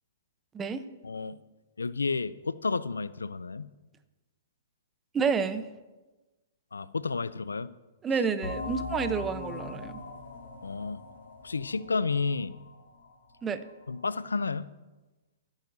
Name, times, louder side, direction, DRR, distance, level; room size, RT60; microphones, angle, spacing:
voice 1, 1.0-1.4 1.8-3.7 6.7-7.7 10.6-11.0 11.4-12.5 13.9-14.7, left 4 dB, 90° left, 17 dB, 0.5 m, -31 dB
voice 2, 5.1-5.7 8.0-10.0 13.4-13.6, right 5 dB, 20° right, 11 dB, 0.8 m, -29 dB
sound 1, 8.4-13.7, left 3 dB, 60° left, 1.7 m, -41 dB
23.5 x 9.0 x 2.7 m, 1.2 s
hypercardioid pair, 120°, 0 cm